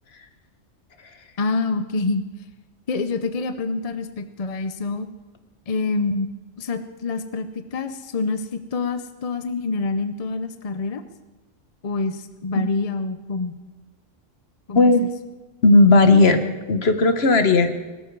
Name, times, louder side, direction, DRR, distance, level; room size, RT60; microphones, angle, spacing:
voice 1, 1.4-2.2 2.9-5.1 5.7-6.3 6.6-11.0 11.8-13.6 14.7-15.1, left 3 dB, 35° left, 9 dB, 0.6 m, -26 dB
voice 2, 15.6-16.4 16.7-17.7, left 2 dB, 55° left, 9 dB, 1.3 m, -15 dB
21.0 x 12.5 x 4.7 m, 1.2 s
omnidirectional pair, 1.3 m